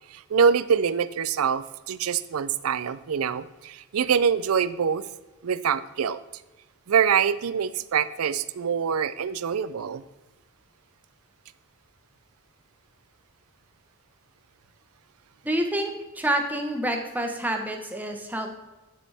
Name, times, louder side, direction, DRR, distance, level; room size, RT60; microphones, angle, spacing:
voice 1, 0.1-5.0 5.4-6.2 6.9-10.0, right 7 dB, 90° right, 15 dB, 0.4 m, -24 dB
voice 2, 15.4-18.5, right 1 dB, 10° right, 3 dB, 1.0 m, -28 dB
10.0 x 7.0 x 3.5 m, 1.1 s
head